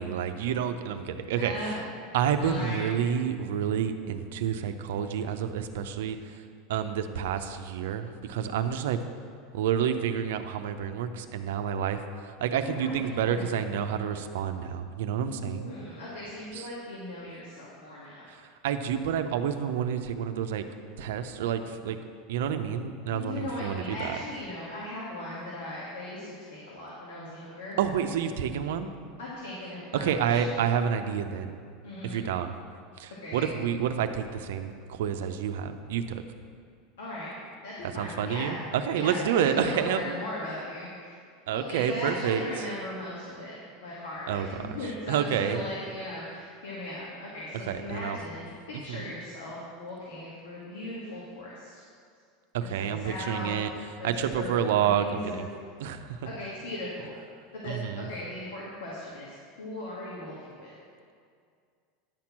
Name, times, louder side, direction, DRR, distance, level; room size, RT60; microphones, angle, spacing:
voice 1, 0.0-1.8 2.1-6.4 6.7-9.0 9.5-15.7 16.5-16.7 18.3-20.6 21.0-22.0 22.3-24.2 27.8-28.9 29.9-31.6 32.0-32.5 33.0-36.2 38.0-40.1 41.5-42.4 44.3-44.8 45.1-45.6 47.5-48.2 48.9-49.1 52.5-53.7 54.0-55.5 55.8-56.2 57.6-58.1, right 8 dB, 80° right, 8 dB, 0.6 m, -29 dB
voice 2, 1.4-1.9 2.4-2.8 12.6-13.6 15.2-18.3 23.1-27.8 29.2-30.4 31.8-32.2 33.2-33.5 37.0-37.3 37.6-38.6 38.9-41.1 41.5-43.5 43.8-51.7 52.8-53.6 54.0-54.5 54.8-55.6 56.2-57.1 57.5-60.7, left 1 dB, 85° left, -6 dB, 2.0 m, -38 dB
10.5 x 4.4 x 7.3 m, 2.2 s
supercardioid pair, 110°, 0 cm